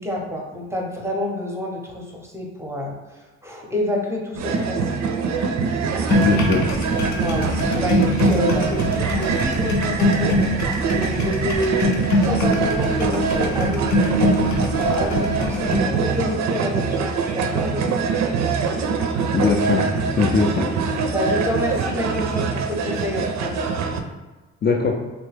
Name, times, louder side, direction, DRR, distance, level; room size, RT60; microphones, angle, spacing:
voice 1, 0.0-4.8 7.1-18.0 21.1-23.5, left 1 dB, 10° right, -1 dB, 0.7 m, -28 dB
sound 1, 4.3-24.0, right 5 dB, 65° right, 0.5 m, -23 dB
sound 2, 6.1-15.8, left 2 dB, 70° left, 0.7 m, -23 dB
voice 2, 6.2-6.7 19.3-20.7 24.6-25.0, left 5 dB, 35° left, 0 dB, 0.4 m, -21 dB
3.1 x 2.2 x 3.2 m, 1.2 s
cardioid pair, 90°, 30 cm